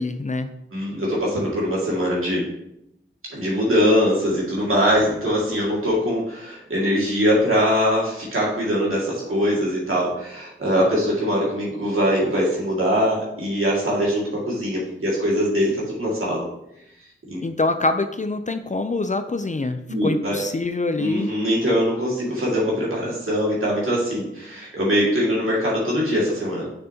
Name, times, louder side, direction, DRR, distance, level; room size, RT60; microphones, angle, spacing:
voice 1, 0.0-0.5 17.4-21.3, left 2 dB, 35° left, 9 dB, 0.5 m, -25 dB
voice 2, 0.7-2.4 3.3-16.4 17.3-17.4 19.9-20.4 21.0-26.7, equal, 90° right, -5 dB, 2.1 m, -22 dB
6.6 x 6.4 x 2.9 m, 0.80 s
wide cardioid pair, 45°, 21 cm